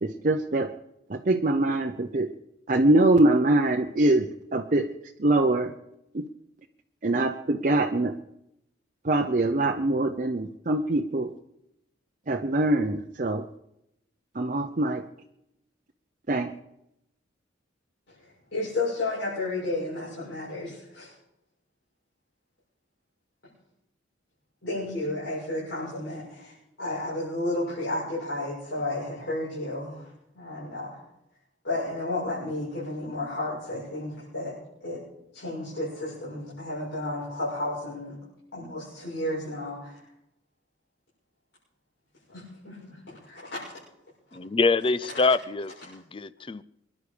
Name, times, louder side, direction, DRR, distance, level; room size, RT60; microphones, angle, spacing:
voice 1, 0.0-0.7 1.1-2.3 2.7-4.3 4.5-4.9 5.2-5.7 6.1-6.2 7.0-8.1 9.0-11.3 12.3-13.4 14.3-15.0 16.3-16.5, right 2 dB, 45° right, 0.7 m, -23 dB
voice 2, 18.2-21.1 24.6-30.1 30.3-31.0 31.6-35.1 35.3-38.2 38.5-40.0 42.3-43.7, left 2 dB, 75° left, 7.4 m, -32 dB
voice 3, 44.3-46.6, left 3 dB, 30° left, 0.5 m, -25 dB
25.0 x 11.0 x 5.0 m
head